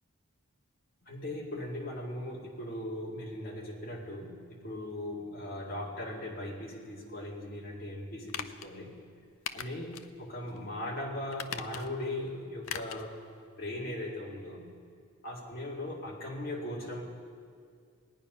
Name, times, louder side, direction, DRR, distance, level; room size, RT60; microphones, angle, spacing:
voice 1, 1.0-8.9 9.5-13.2 13.6-14.7 15.2-17.0, left 1 dB, 45° left, -3 dB, 2.4 m, -39 dB
sound 1, 8.3-8.7 9.5-10.1 10.5-10.6 11.3-12.1 12.6-13.1 13.4-13.5, left 8 dB, 80° left, 0.5 m, -40 dB
19.0 x 9.7 x 5.6 m, 2.2 s
head